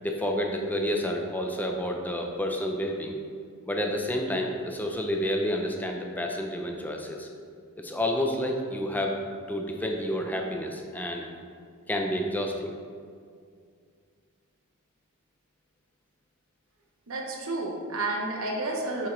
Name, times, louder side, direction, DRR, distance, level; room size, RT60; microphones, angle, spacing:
voice 1, 0.0-3.2 3.7-7.3 7.8-9.2 9.5-11.3 11.9-12.7, left 1 dB, 10° left, 2 dB, 0.6 m, -29 dB
voice 2, 17.1-19.1, right 2 dB, 70° right, 0 dB, 1.0 m, -31 dB
5.7 x 5.2 x 3.8 m, 2.2 s
head